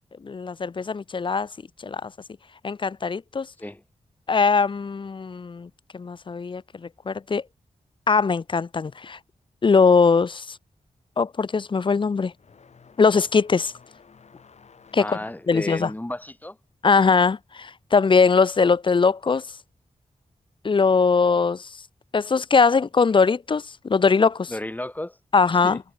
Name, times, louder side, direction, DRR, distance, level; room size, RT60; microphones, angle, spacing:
voice 1, 0.2-1.5 1.8-2.1 2.6-3.5 4.3-7.4 8.1-9.2 9.6-10.6 11.2-12.3 13.0-13.7 14.9-15.2 15.5-15.9 16.8-19.4 20.6-21.7 22.1-24.5 25.3-25.8, left 5 dB, 40° left, 0.6 m, -21 dB
sound 1, 10.4-18.7 19.0-20.1 21.1-21.2 22.0-22.1 23.8-23.9, left 5 dB, 65° left, 3.2 m, -55 dB
voice 2, 15.0-16.6 24.5-25.2 25.6-25.8, left 1 dB, 15° left, 3.5 m, -33 dB
wide cardioid pair, 80°, 12 cm